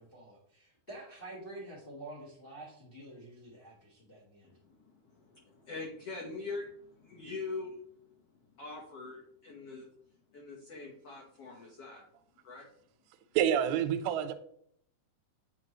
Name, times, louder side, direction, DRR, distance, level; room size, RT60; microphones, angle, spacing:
voice 1, 0.0-4.5, right 1 dB, 35° left, 0.9 m, -48 dB
voice 2, 4.4-12.1 12.4-12.7, left 3 dB, 75° left, 1.4 m, -44 dB
voice 3, 13.4-14.3, right 9 dB, 90° right, 2.5 m, -28 dB
9.4 x 4.8 x 3.0 m
omnidirectional pair, 4.4 m